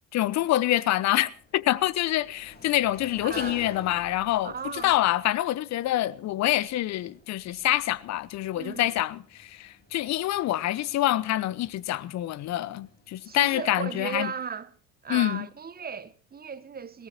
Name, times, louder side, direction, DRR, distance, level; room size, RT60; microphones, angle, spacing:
voice 1, 0.1-14.3 15.1-15.5, left 14 dB, 40° left, 0.9 m, -26 dB
Sliding door, 1.0-13.7, left 4 dB, 25° left, 5.4 m, -50 dB
voice 2, 3.2-3.6 4.4-4.9 8.5-8.9 13.2-14.7 15.0-17.1, right 6 dB, 20° right, 1.2 m, -36 dB
21.5 x 17.5 x 2.9 m
figure-of-eight pair, 60°, 41 cm